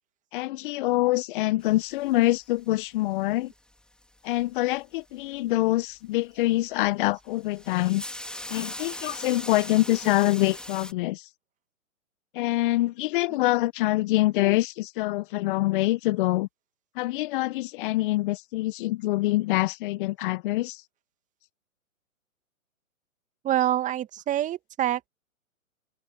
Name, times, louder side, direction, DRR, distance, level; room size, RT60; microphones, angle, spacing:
voice 1, 0.3-3.5 4.2-8.0 8.5-11.2 12.3-16.5 16.9-20.8, left 18 dB, 35° left, 1.5 m, -25 dB
sound 1, 1.6-2.7 4.0-4.5 6.7-6.9 7.2-10.9, left 1 dB, ahead, 3.5 m, -39 dB
voice 2, 23.4-25.1, right 12 dB, 15° right, 2.1 m, -26 dB
hypercardioid pair, 130°, 43 cm